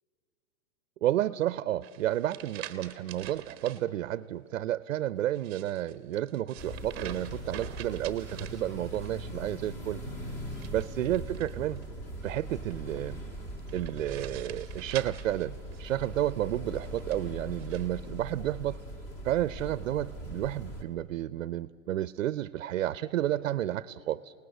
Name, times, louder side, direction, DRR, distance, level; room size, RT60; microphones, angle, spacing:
voice 1, 1.0-10.0 10.7-11.8 12.2-13.2 13.7-18.8 19.2-24.3, right 13 dB, 65° right, 16 dB, 0.6 m, -31 dB
sound 1, 1.8-3.8 5.3-9.2 10.5-11.8 13.7-16.1 16.8-17.9, right 11 dB, 20° right, 0.9 m, -46 dB
sound 2, 6.6-20.8, equal, 20° left, 1.6 m, -41 dB
27.5 x 19.0 x 8.0 m, 2.5 s
hypercardioid pair, 175°, 40 cm